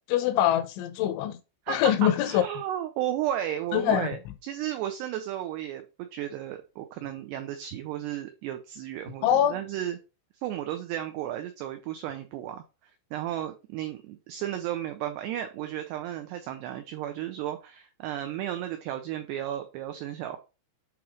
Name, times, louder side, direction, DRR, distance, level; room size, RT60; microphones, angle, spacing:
voice 1, 0.1-1.4 1.7-2.4 3.7-4.1 9.2-9.6, left 11 dB, 80° left, 2.8 m, -24 dB
voice 2, 1.7-10.0 10.4-12.6 13.1-20.4, right 11 dB, 90° right, 2.3 m, -34 dB
8.3 x 3.0 x 4.9 m
omnidirectional pair, 5.6 m